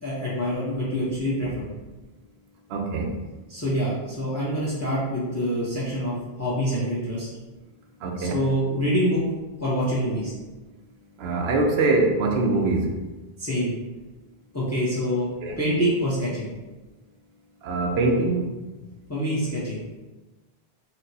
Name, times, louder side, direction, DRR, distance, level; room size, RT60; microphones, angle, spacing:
voice 1, 0.0-1.6 3.5-7.3 8.2-9.2 9.6-10.3 13.4-13.7 14.5-15.3 15.6-16.5 19.1-19.8, equal, 20° left, -6 dB, 0.6 m, -26 dB
voice 2, 2.7-3.2 8.0-8.4 11.2-12.9 15.4-15.5 17.6-18.5, right 2 dB, 75° right, 2 dB, 0.8 m, -23 dB
4.4 x 2.0 x 2.7 m, 1.2 s
omnidirectional pair, 1.1 m